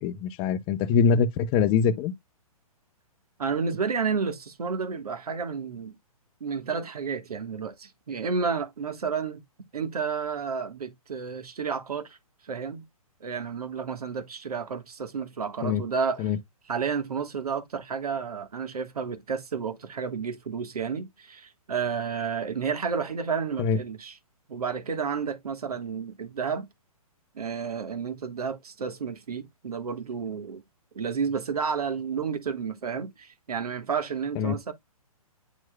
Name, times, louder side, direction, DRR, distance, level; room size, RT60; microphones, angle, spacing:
voice 1, 0.0-2.1 15.6-15.8 16.2-16.4 23.6-23.8 34.3-34.6, left 6 dB, 25° left, 0.6 m, -23 dB
voice 2, 3.4-5.9 6.4-9.4 9.7-12.2 12.4-12.8 13.2-16.2 16.7-24.1 24.5-26.7 27.3-30.6 30.9-34.7, right 6 dB, 80° right, 1.4 m, -31 dB
9.7 x 4.5 x 2.2 m
hypercardioid pair, 135°, 19 cm